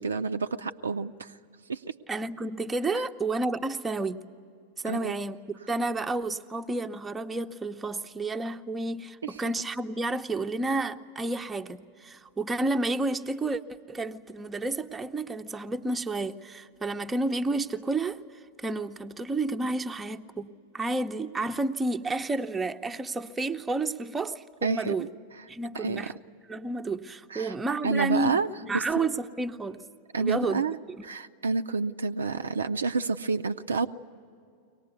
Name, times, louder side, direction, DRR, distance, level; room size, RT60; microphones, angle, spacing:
voice 1, 0.0-1.3 1.7-1.9 4.9-5.2 9.2-9.3 24.6-25.1 25.7-26.1 27.3-27.5 27.8-28.5 28.7-29.1 30.1-30.8 31.0-33.9, right 4 dB, 75° right, 0.5 m, -29 dB
voice 2, 2.1-4.2 4.8-13.6 13.9-18.2 18.6-25.1 25.5-26.1 26.5-28.4 28.6-29.8 30.2-30.6 31.0-31.1, right 2 dB, 10° right, 0.7 m, -31 dB
24.0 x 19.0 x 9.5 m
figure-of-eight pair, 90°, 0 cm